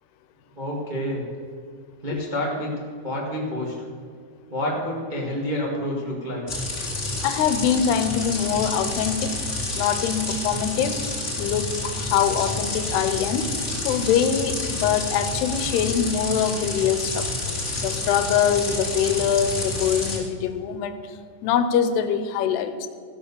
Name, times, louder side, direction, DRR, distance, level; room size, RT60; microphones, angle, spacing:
voice 1, 0.5-1.2 2.0-3.7 4.5-6.4, left 1 dB, 45° right, -4 dB, 0.5 m, -28 dB
sound 1, 6.5-20.2, left 2 dB, 20° left, 2.1 m, -29 dB
voice 2, 7.2-9.3 9.7-11.1 11.4-13.5 13.8-17.3 17.8-22.9, left 8 dB, 90° left, 10 dB, 2.9 m, -24 dB
15.0 x 7.2 x 6.9 m, 2.1 s
omnidirectional pair, 4.6 m